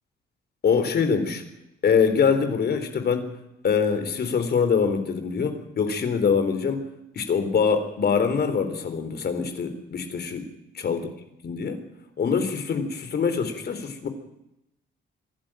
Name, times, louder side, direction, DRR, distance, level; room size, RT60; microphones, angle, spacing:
voice 1, 0.6-1.4 1.8-3.3 3.6-6.8 7.2-10.5 10.7-11.1 11.4-11.8 12.2-14.1, left 6 dB, 55° left, 8 dB, 3.9 m, -24 dB
26.0 x 11.5 x 9.0 m, 0.87 s
cardioid pair, 90°, 20 cm